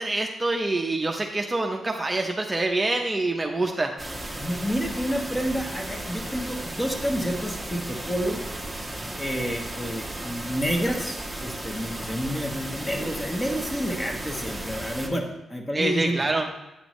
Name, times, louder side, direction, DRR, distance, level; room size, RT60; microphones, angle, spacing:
voice 1, 0.0-3.9 15.7-16.5, right 2 dB, 25° right, 2 dB, 0.6 m, -26 dB
sound 1, 4.0-15.1, right 1 dB, 5° right, 1.1 m, -35 dB
voice 2, 4.4-8.4 9.2-16.2, equal, 20° left, 2 dB, 1.3 m, -29 dB
8.7 x 6.0 x 3.1 m, 0.98 s
cardioid pair, 75°, 0 cm